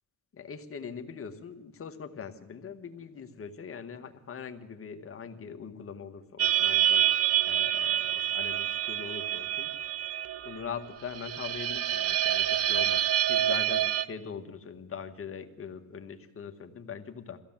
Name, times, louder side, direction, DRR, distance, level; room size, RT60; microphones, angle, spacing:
voice 1, 0.3-7.1 7.5-9.7 10.4-17.4, left 6 dB, 45° left, 7 dB, 1.9 m, -42 dB
sound 1, 6.4-14.1, right 11 dB, 55° right, 0.8 m, -27 dB
22.5 x 15.5 x 7.6 m, 0.95 s
cardioid pair, 90°, 30 cm